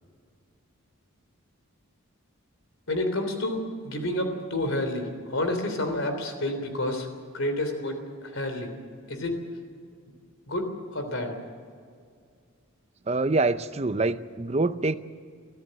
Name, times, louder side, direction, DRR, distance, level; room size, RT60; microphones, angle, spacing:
voice 1, 2.9-7.1 7.3-8.0 8.2-8.7 9.1-9.4 10.5-11.4, left 1 dB, 70° left, 6 dB, 3.4 m, -29 dB
voice 2, 13.1-15.0, right 3 dB, 30° right, 12 dB, 0.6 m, -25 dB
23.5 x 14.5 x 7.7 m, 2.1 s
head